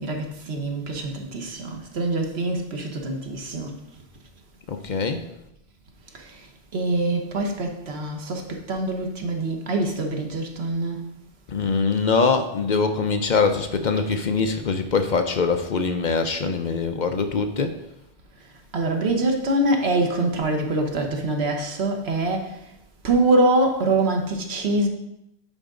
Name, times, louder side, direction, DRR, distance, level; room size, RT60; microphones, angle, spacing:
voice 1, 0.0-3.7 6.1-6.4 6.7-11.0 18.7-22.5 23.0-24.9, right 2 dB, 85° right, 3 dB, 1.3 m, -24 dB
voice 2, 4.7-5.2 11.5-17.8, left 4 dB, 55° left, 7 dB, 0.7 m, -23 dB
8.7 x 5.0 x 3.8 m, 0.84 s
omnidirectional pair, 1.0 m